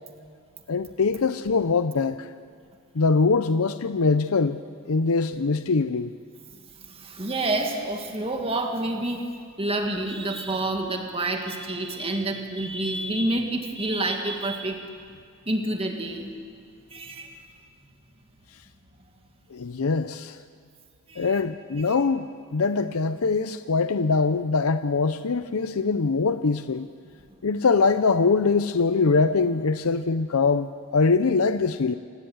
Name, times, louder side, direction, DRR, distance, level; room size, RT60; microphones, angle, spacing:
voice 1, 0.7-2.3 2.9-4.6 4.9-6.2 19.5-20.4 21.2-26.9 27.4-31.9, left 4 dB, 85° left, 11 dB, 0.7 m, -23 dB
voice 2, 6.9-9.2 9.6-14.8 15.5-16.3 16.9-17.4 21.1-21.3 21.8-21.9, right 2 dB, 25° right, 3 dB, 2.1 m, -28 dB
29.0 x 18.0 x 8.0 m, 2.3 s
head